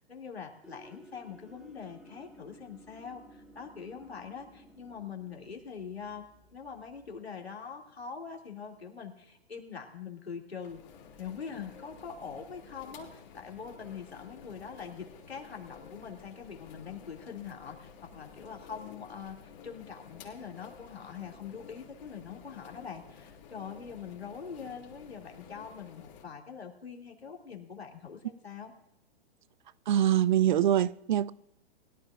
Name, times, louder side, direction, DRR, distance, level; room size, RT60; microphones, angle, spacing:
voice 1, 0.0-6.2 6.5-10.8 11.1-28.7, left 6 dB, 80° left, 2.5 m, -43 dB
sound 1, 0.6-7.2, right 1 dB, ahead, 1.9 m, -56 dB
sound 2, 10.6-26.2, left 7 dB, 45° left, 3.0 m, -52 dB
voice 2, 29.9-31.3, right 11 dB, 50° right, 0.5 m, -24 dB
21.5 x 11.5 x 2.4 m
figure-of-eight pair, 115°, 31 cm